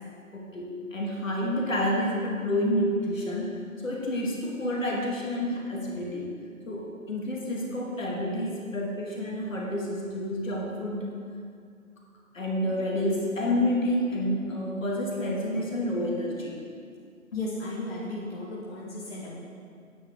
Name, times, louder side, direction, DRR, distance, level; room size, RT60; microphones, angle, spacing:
voice 1, 0.3-6.3 6.7-11.2 12.3-16.6, left 1 dB, 65° left, -2 dB, 2.2 m, -29 dB
voice 2, 17.3-19.3, left 2 dB, 45° left, -6 dB, 1.7 m, -35 dB
9.2 x 8.9 x 3.6 m, 2.2 s
figure-of-eight pair, 150°, 42 cm